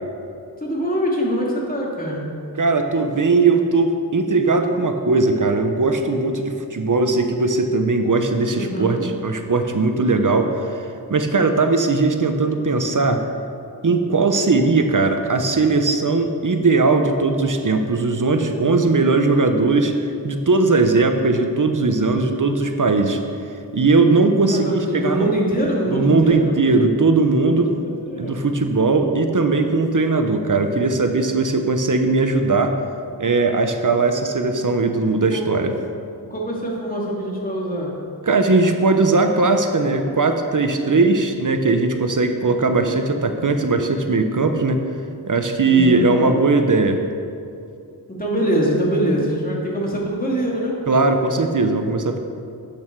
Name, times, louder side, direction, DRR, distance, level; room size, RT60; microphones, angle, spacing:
voice 1, 0.6-2.3 8.5-9.1 24.4-26.5 27.5-28.5 35.3-35.6 36.2-37.9 45.7-46.4 48.1-50.7, equal, 20° left, -4 dB, 2.6 m, -24 dB
voice 2, 2.6-10.8 11.1-13.2 13.8-19.9 20.2-23.2 23.7-25.3 25.9-27.7 28.2-32.8 33.2-35.7 38.3-44.8 45.3-47.0 50.9-52.2, right 3 dB, 50° right, 6 dB, 0.9 m, -19 dB
11.5 x 8.6 x 4.7 m, 2.5 s
wide cardioid pair, 65°, 40 cm